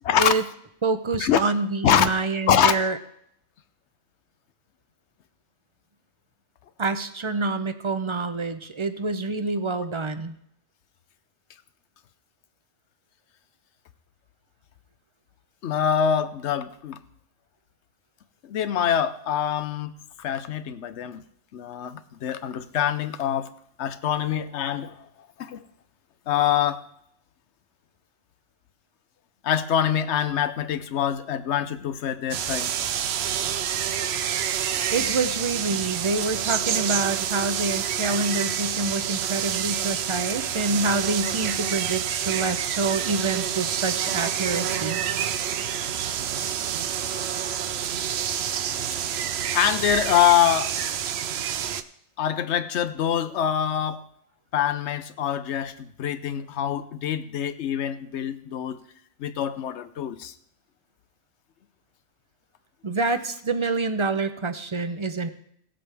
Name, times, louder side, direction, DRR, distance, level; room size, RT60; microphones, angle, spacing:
voice 1, 0.8-3.0 6.8-10.3 34.9-45.0 62.8-65.3, right 3 dB, 35° right, 9 dB, 0.5 m, -27 dB
voice 2, 2.5-2.8 15.6-17.0 18.4-19.9 20.2-21.2 21.5-23.5 23.8-25.1 25.4-25.6 26.3-26.8 29.4-32.7 49.5-50.8 52.2-54.0 54.5-58.8 59.2-60.3, left 9 dB, 75° left, 13 dB, 1.0 m, -24 dB
sound 1, 32.3-51.8, right 9 dB, 70° right, 0.8 m, -28 dB
17.5 x 7.6 x 3.4 m, 0.70 s
omnidirectional pair, 1.2 m